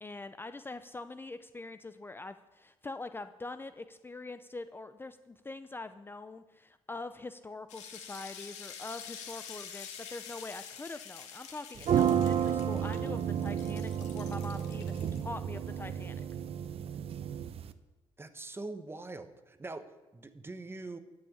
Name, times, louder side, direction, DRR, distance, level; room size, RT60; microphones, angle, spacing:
voice 1, 0.0-16.2, left 2 dB, 20° left, 11 dB, 0.5 m, -44 dB
sound 1, 7.7-15.2, left 8 dB, 85° left, 1.8 m, -47 dB
sound 2, 11.8-17.7, right 9 dB, 60° right, 0.7 m, -31 dB
voice 2, 18.2-19.9 20.1-21.0, right 2 dB, 20° right, 11 dB, 1.1 m, -43 dB
12.5 x 6.4 x 8.6 m, 1.1 s
cardioid pair, 80°, 11 cm